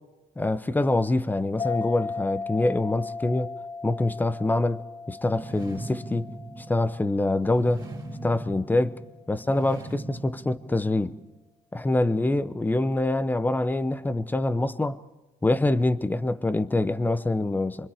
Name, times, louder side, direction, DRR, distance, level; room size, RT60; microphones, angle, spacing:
voice 1, 0.4-3.5 3.8-4.8 5.1-6.3 6.7-7.8 8.2-8.9 9.3-11.1 11.7-15.0 15.4-17.9, left 2 dB, 10° left, 0.9 m, -25 dB
sound 1, 1.6-8.6, left 4 dB, 40° left, 2.4 m, -37 dB
sound 2, 5.2-11.3, right 2 dB, 25° right, 3.8 m, -40 dB
26.5 x 24.0 x 5.0 m
cardioid pair, 110°, 17 cm